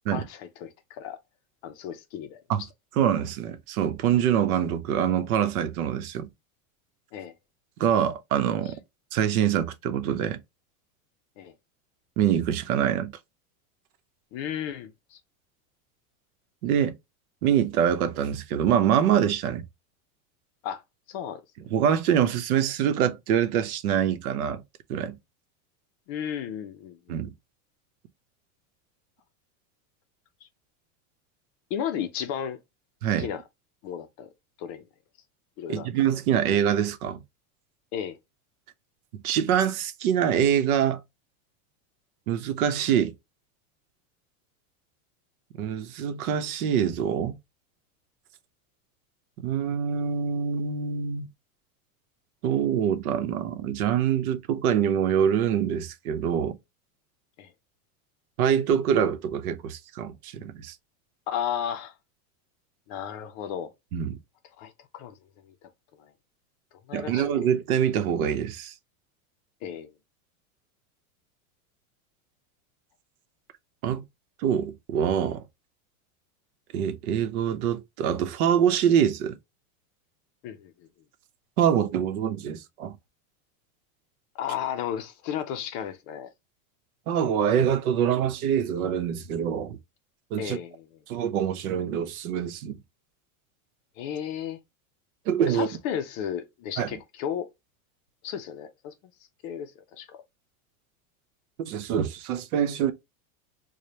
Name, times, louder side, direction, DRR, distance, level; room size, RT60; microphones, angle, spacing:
voice 1, 0.1-1.2 1.6-2.7 7.1-7.3 11.4-11.5 14.3-15.2 20.6-20.8 21.1-21.4 26.1-27.2 31.7-32.6 33.1-33.4 33.8-34.3 34.6-34.9 35.6-35.9 37.9-38.2 57.4-57.5 61.3-61.9 62.9-63.7 64.6-65.1 66.0-66.1 66.9-67.2 69.6-69.9 80.4-80.9 84.3-86.3 90.4-90.8 94.0-94.6 95.5-97.5 98.2-98.9 99.4-100.2, left 9 dB, 35° left, 0.4 m, -34 dB
voice 2, 3.0-6.3 7.8-8.7 9.1-10.4 12.2-13.1 16.6-17.0 17.4-19.7 21.7-24.6 24.9-25.2 27.1-27.3 33.0-33.3 35.7-37.2 39.2-41.0 42.3-43.1 45.6-47.4 49.4-51.3 52.4-56.6 58.4-60.7 63.9-64.2 66.9-68.7 73.8-74.0 74.4-75.4 76.7-79.4 81.6-82.9 87.1-89.8 90.3-90.6 91.1-92.8 95.3-95.7 96.8-96.9 101.6-102.9, right 9 dB, 85° right, 0.8 m, -25 dB
4.9 x 2.2 x 2.8 m
supercardioid pair, 155°, 43 cm